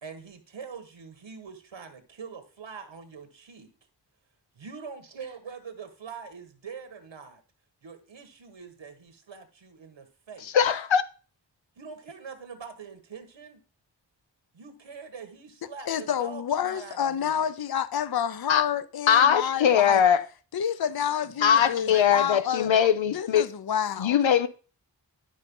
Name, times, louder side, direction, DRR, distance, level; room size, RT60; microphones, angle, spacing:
voice 1, 0.0-3.7 4.5-7.4 7.8-10.5 11.8-13.6 14.5-17.5 21.4-21.7 21.9-22.3 22.6-23.2, right 5 dB, 90° right, 1.5 m, -43 dB
voice 2, 10.4-11.0 18.5-18.6 19.1-20.2 21.4-23.5 24.0-24.5, left 8 dB, 90° left, 0.8 m, -21 dB
voice 3, 15.9-20.0 20.5-22.7 23.1-24.2, left 8 dB, 55° left, 0.7 m, -29 dB
12.0 x 5.4 x 5.4 m
wide cardioid pair, 60°, 44 cm